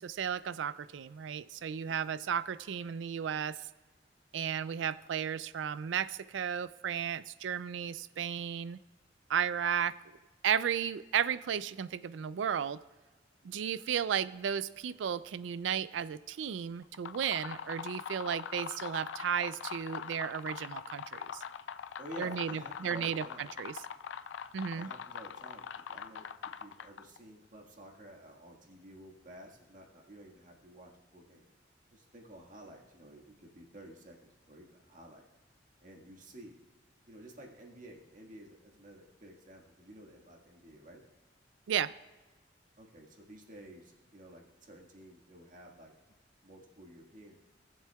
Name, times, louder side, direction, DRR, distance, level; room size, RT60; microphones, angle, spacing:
voice 1, 0.0-3.5 4.3-8.8 9.3-10.0 10.4-12.8 13.4-21.4 22.2-23.2 23.6-23.8 24.5-24.9 41.7-41.9, right 8 dB, 85° right, 16 dB, 0.4 m, -34 dB
sound 1, 16.8-27.2, left 7 dB, 85° left, 0.4 m, -43 dB
voice 2, 22.0-23.5 24.7-26.2 26.6-31.5 31.9-35.2 35.8-36.6 37.1-41.0 42.8-45.9 46.4-47.4, right 1 dB, 45° right, 0 dB, 1.7 m, -52 dB
18.5 x 7.5 x 2.3 m, 1.2 s
head